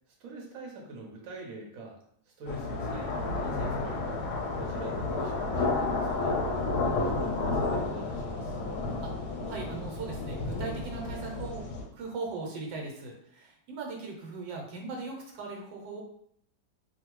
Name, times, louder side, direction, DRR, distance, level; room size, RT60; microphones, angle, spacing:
voice 1, 0.1-2.0 2.3-4.2 4.5-6.4 6.9-8.6, equal, 60° right, -1 dB, 1.0 m, -44 dB
sound 1, 2.5-11.8, left 3 dB, 70° left, 1.0 m, -31 dB
voice 2, 9.5-11.7 11.9-16.0, right 3 dB, 90° right, 0 dB, 1.4 m, -39 dB
2.7 x 2.6 x 2.9 m, 0.67 s
omnidirectional pair, 1.9 m